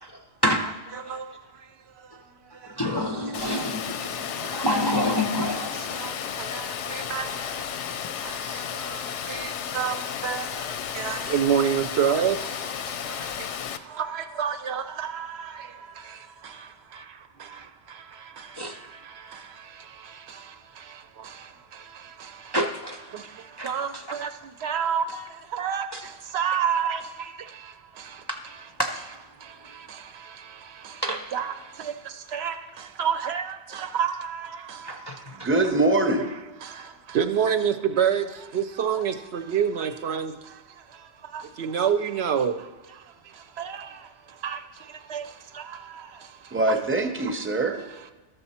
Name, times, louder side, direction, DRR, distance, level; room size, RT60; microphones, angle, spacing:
voice 1, 0.0-0.6 1.0-1.2 2.6-6.3 11.1-11.3 18.5-18.8 22.5-23.0 23.6-24.0 25.9-26.0 28.3-28.4 28.8-29.0 31.0-31.2 34.8-35.5, equal, 30° left, 0.4 m, -28 dB
voice 2, 0.6-2.8 4.3-4.6 5.8-16.9 17.4-22.6 23.1-28.7 29.3-35.5 36.2-36.3 36.6-46.8 47.2-47.4 47.7-48.1, right 7 dB, 70° right, 0.8 m, -31 dB
Water, 3.3-13.8, left 8 dB, 90° left, 0.9 m, -33 dB
voice 3, 35.3-36.3 46.5-47.8, right 2 dB, 15° right, 0.6 m, -23 dB
12.5 x 6.8 x 4.2 m
omnidirectional pair, 1.2 m